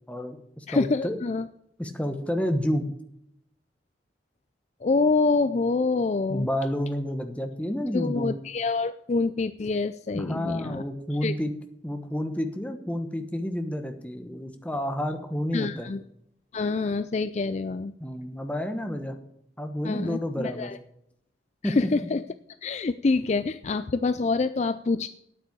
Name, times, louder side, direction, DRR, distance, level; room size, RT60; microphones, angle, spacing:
voice 1, 0.1-1.2 1.8-2.9 6.3-8.4 10.1-11.5 11.8-15.9 18.0-19.2 19.6-20.7 21.6-21.7, equal, 5° left, 6 dB, 1.2 m, -30 dB
voice 2, 0.7-1.5 4.8-6.5 7.9-10.8 11.2-11.3 15.5-16.0 16.5-17.9 19.8-20.8 21.6-22.2 22.6-25.1, left 3 dB, 40° left, 13 dB, 0.4 m, -26 dB
9.3 x 8.4 x 8.2 m, 0.76 s
head